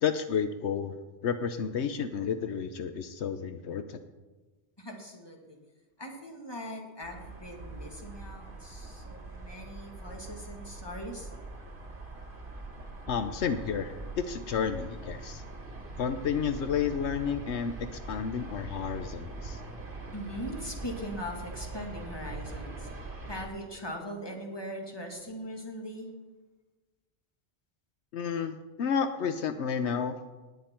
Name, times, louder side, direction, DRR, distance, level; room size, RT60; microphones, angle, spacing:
voice 1, 0.0-1.0 1.2-4.0 13.1-15.4 16.0-19.6 28.1-30.1, left 7 dB, 80° left, 9 dB, 1.0 m, -31 dB
voice 2, 4.8-5.6 6.0-11.3 20.1-26.1, equal, 20° left, 1 dB, 2.0 m, -41 dB
sound 1, 7.0-23.5, right 2 dB, 50° right, 1.7 m, -42 dB
18.5 x 9.3 x 4.4 m, 1.2 s
omnidirectional pair, 1.1 m